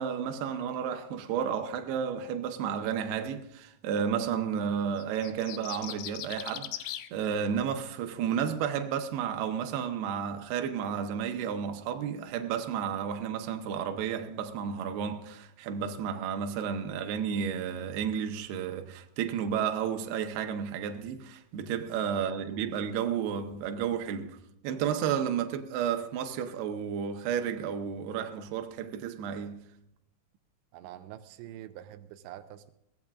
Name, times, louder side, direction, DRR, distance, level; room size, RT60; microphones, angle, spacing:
voice 1, 0.0-24.4 24.6-29.7, right 8 dB, 75° right, 2.9 m, -32 dB
sound 1, 5.0-7.1, left 13 dB, 85° left, 2.1 m, -39 dB
voice 2, 22.1-22.7 30.7-32.7, right 12 dB, 90° right, 3.0 m, -46 dB
22.0 x 16.5 x 2.5 m
omnidirectional pair, 5.0 m